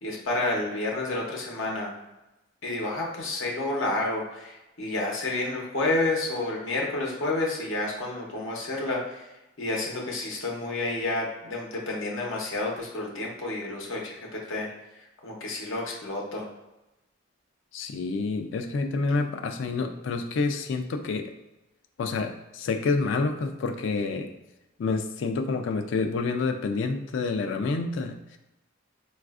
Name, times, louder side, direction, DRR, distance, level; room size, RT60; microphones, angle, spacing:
voice 1, 0.0-1.9 2.6-9.3 9.6-14.7 14.9-16.4, left 2 dB, 80° left, -2 dB, 0.8 m, -30 dB
voice 2, 17.7-21.3 22.0-24.3 24.8-28.4, left 4 dB, 65° left, 6 dB, 0.3 m, -28 dB
4.0 x 2.4 x 2.4 m, 0.98 s
head